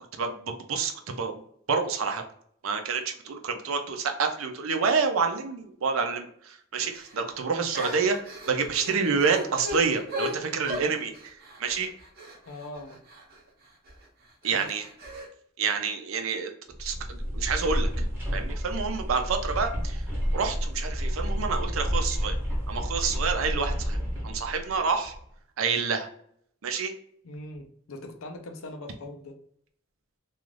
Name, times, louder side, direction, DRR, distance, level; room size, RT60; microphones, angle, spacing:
voice 1, 0.1-1.4 1.7-2.2 2.6-8.2 8.5-11.9 14.4-14.8 15.6-16.5 16.8-18.1 18.3-20.0 20.3-22.4 22.7-24.0 24.2-25.1 25.6-26.1 26.6-26.9, right 5 dB, 75° right, 5 dB, 0.5 m, -28 dB
sound 1, 6.9-7.2 7.7-13.4 13.9-14.0 14.4-15.3, equal, 45° right, 0.7 m, -37 dB
voice 2, 12.5-13.0 14.5-14.7 27.2-29.4, left 2 dB, 80° left, 6 dB, 0.5 m, -41 dB
sound 2, 16.7-25.2, equal, 10° right, 0.8 m, -30 dB
2.4 x 2.3 x 3.2 m, 0.66 s
head